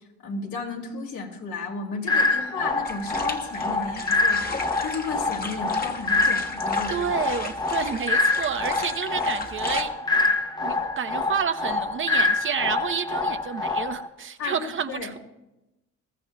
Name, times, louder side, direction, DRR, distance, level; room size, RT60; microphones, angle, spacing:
voice 1, 0.2-7.1 14.4-15.1, left 4 dB, 70° left, 1 dB, 2.5 m, -34 dB
sound 1, 2.1-14.1, left 3 dB, 15° left, 0.8 m, -26 dB
sound 2, 2.8-9.8, left 3 dB, 30° left, 1.3 m, -36 dB
voice 2, 6.9-9.9 10.6-15.2, right 7 dB, 40° right, 9 dB, 0.7 m, -29 dB
21.5 x 13.5 x 2.2 m, 0.97 s
cardioid pair, 90°, 30 cm